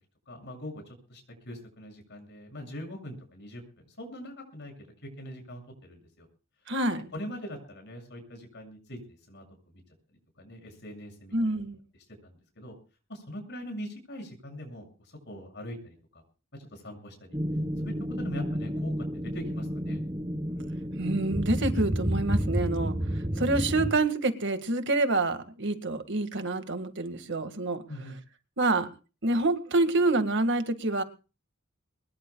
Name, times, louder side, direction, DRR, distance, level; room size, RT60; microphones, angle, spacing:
voice 1, 0.3-6.3 7.1-9.4 9.7-9.8 10.4-11.3 12.2-12.7 13.1-16.2 16.5-17.4 17.8-20.0 27.9-28.2, equal, 55° left, 3 dB, 7.0 m, -42 dB
voice 2, 6.7-7.1 11.3-11.8 21.0-27.8 28.6-28.9 29.2-31.0, right 2 dB, 60° right, 9 dB, 1.9 m, -27 dB
sound 1, 17.3-23.9, equal, 20° right, 1.5 m, -30 dB
24.0 x 21.0 x 2.3 m, 0.34 s
head